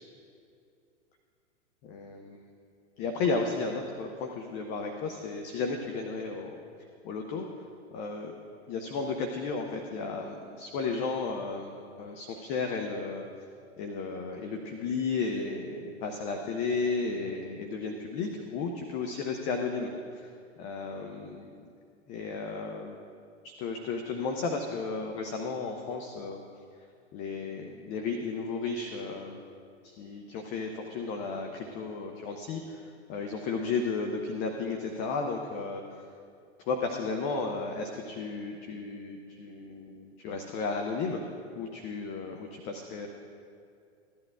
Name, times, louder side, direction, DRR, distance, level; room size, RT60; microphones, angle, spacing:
voice 1, 1.8-2.4 3.0-6.6 7.0-7.5 7.9-8.3 8.7-13.3 13.8-20.3 20.6-21.4 22.1-23.0 23.4-26.4 27.1-29.4 29.8-36.0 36.6-41.3 41.5-43.1, left 4 dB, 20° left, 3 dB, 0.5 m, -34 dB
15.0 x 10.5 x 2.3 m, 2.4 s
figure-of-eight pair, 105°, 36 cm